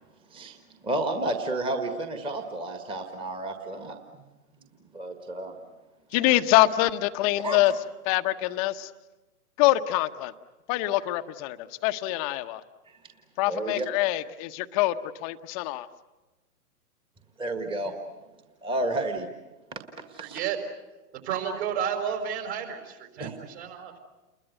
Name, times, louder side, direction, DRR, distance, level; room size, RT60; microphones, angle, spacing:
voice 1, 0.8-4.0 4.9-5.5 7.4-7.6 12.9-13.0 13.5-13.9 17.4-17.9 18.6-19.3 19.7-19.8 20.1-20.4 23.2-23.4, right 2 dB, 10° right, 5 dB, 1.7 m, -31 dB
voice 2, 6.1-7.7 8.1-8.9 9.6-10.3 10.7-12.6 13.4-15.9, left 16 dB, 25° left, 10 dB, 0.9 m, -25 dB
voice 3, 20.2-20.6 21.2-24.0, right 8 dB, 45° right, 5 dB, 5.4 m, -31 dB
29.5 x 22.0 x 8.1 m, 1.1 s
hypercardioid pair, 130°, 46 cm